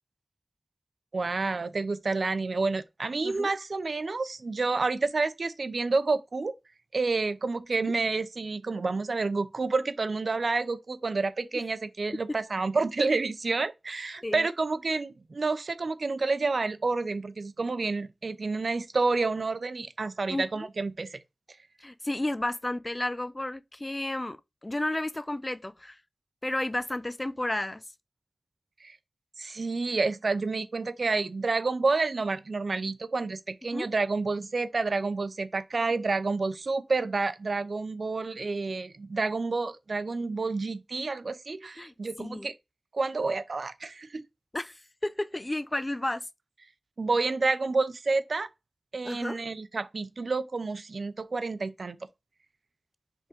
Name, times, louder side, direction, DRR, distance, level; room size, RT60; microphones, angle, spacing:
voice 1, 1.1-6.5 6.9-21.2 28.8-29.0 29.4-42.5 42.9-44.2 47.0-48.5 48.9-52.0, right 3 dB, 75° right, 0.6 m, -29 dB
voice 2, 21.8-24.4 24.6-26.0 26.4-27.8 33.7-33.9 41.8-42.5 44.5-46.3 49.0-49.4, left 1 dB, 25° left, 0.5 m, -32 dB
5.0 x 3.7 x 5.1 m
wide cardioid pair, 65°, 0 cm